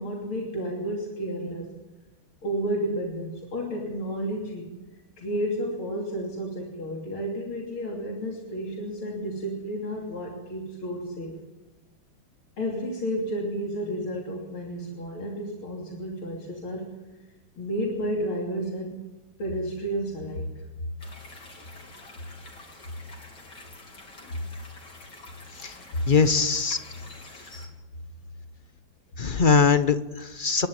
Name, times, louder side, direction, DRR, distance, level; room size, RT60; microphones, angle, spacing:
voice 1, 0.0-1.7 2.4-4.7 5.2-11.4 12.6-16.9 17.6-19.0 19.4-20.5 24.2-24.4, equal, 85° left, -2 dB, 3.9 m, -31 dB
sound 1, 21.0-27.7, left 2 dB, 55° left, 4.3 m, -47 dB
voice 2, 26.1-26.8 29.2-30.7, left 5 dB, 40° left, 10 dB, 0.7 m, -21 dB
28.0 x 12.0 x 9.5 m, 1.1 s
omnidirectional pair, 2.3 m